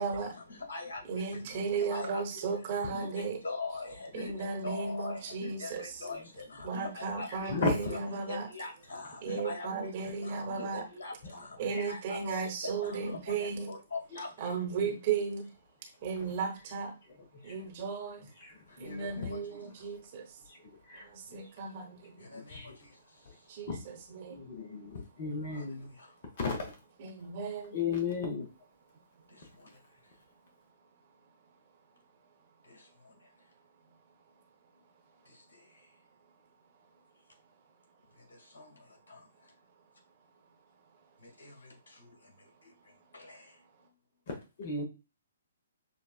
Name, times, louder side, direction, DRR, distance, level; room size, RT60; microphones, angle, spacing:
voice 1, 0.0-7.5 7.9-14.6 18.7-19.9 22.2-23.5 25.5-26.2 29.3-30.1 32.6-33.3 35.2-35.9 38.1-39.5 41.2-43.6, left 3 dB, 65° left, 2.2 m, -44 dB
voice 2, 1.1-3.4 4.1-6.0 6.6-8.5 9.2-10.8 11.6-13.7 14.4-15.5 16.0-16.9 17.4-18.2 18.8-20.3 21.0-22.3 23.5-24.4 27.0-27.7, right 5 dB, 40° right, 1.0 m, -35 dB
voice 3, 7.5-8.0 11.7-11.9 14.8-14.9 17.5-17.6 18.4-18.9 20.5-20.6 20.9-21.1 22.3-22.7 23.7-23.8 24.3-25.9 26.4-26.7 27.7-28.5 44.3-44.8, left 4 dB, 50° left, 1.1 m, -34 dB
6.7 x 2.4 x 2.4 m
figure-of-eight pair, 125°, 0 cm